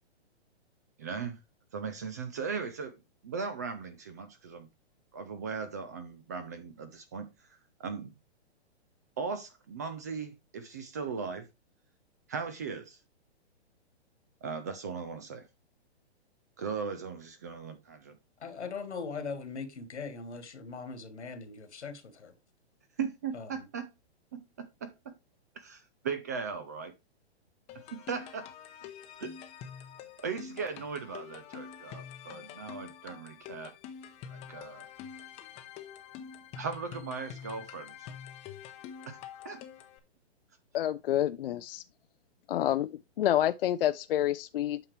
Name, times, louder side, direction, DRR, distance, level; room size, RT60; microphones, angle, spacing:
voice 1, 1.0-1.4 1.7-4.7 5.1-8.1 9.2-11.5 12.3-13.0 14.4-15.5 16.6-18.2 23.0-23.9 24.3-25.2 25.6-26.9 27.9-28.5 29.2-29.4 30.2-33.8 34.3-34.9 36.6-38.1 39.1-39.2 39.4-39.6, right 5 dB, 15° right, 0.3 m, -38 dB
voice 2, 18.4-22.3 23.3-23.7, left 5 dB, 85° left, 1.9 m, -40 dB
sound 1, 27.7-40.0, left 8 dB, 20° left, 0.8 m, -46 dB
voice 3, 40.7-41.8 42.5-42.9 43.2-44.9, left 12 dB, 60° left, 0.5 m, -28 dB
8.8 x 5.8 x 3.2 m
hypercardioid pair, 140°, 33 cm